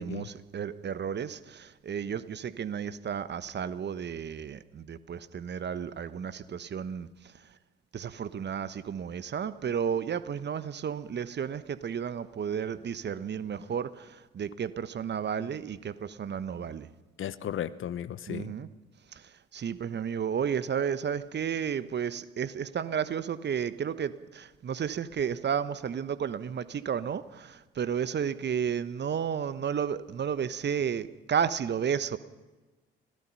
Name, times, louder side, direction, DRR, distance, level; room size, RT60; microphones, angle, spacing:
voice 1, 0.0-7.1 7.9-16.9 18.3-18.7 19.1-19.2 19.5-32.2, right 7 dB, 35° right, 14 dB, 1.2 m, -32 dB
voice 2, 17.2-18.5, left 9 dB, 45° left, 15 dB, 1.1 m, -35 dB
26.0 x 17.5 x 5.7 m, 1.2 s
figure-of-eight pair, 55°, 29 cm